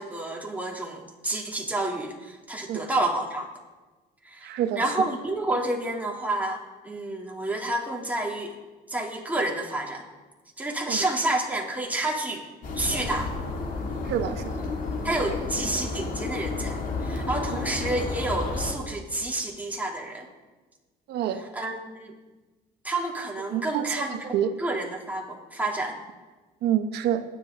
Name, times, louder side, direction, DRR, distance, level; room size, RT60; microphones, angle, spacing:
voice 1, 0.0-3.5 4.2-6.6 6.8-8.5 8.9-10.0 10.6-12.4 12.7-13.3 15.0-20.3 21.5-22.2 22.8-26.0, right 2 dB, 10° right, -1 dB, 3.0 m, -29 dB
voice 2, 4.4-4.9 10.9-11.1 14.0-14.5 21.1-21.5 23.5-24.6 26.6-27.2, right 10 dB, 80° right, 9 dB, 1.1 m, -27 dB
sound 1, 12.6-18.7, left 3 dB, 55° left, 2.9 m, -31 dB
23.0 x 11.0 x 3.9 m, 1.2 s
cardioid pair, 110°, 17 cm